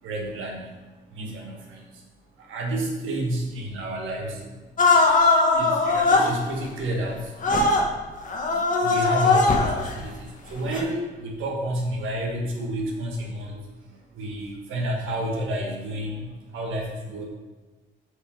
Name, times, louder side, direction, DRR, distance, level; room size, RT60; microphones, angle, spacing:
voice 1, 0.0-2.0 2.4-4.7 5.5-7.4 7.8-7.9 8.2-17.2, right 1 dB, 85° right, -1 dB, 1.7 m, -31 dB
sound 1, 4.8-6.3 7.4-7.9 8.2-9.9 10.7-10.8, left 3 dB, 40° left, 1.2 m, -20 dB
6.5 x 4.9 x 4.5 m, 1.3 s
cardioid pair, 90°, 20 cm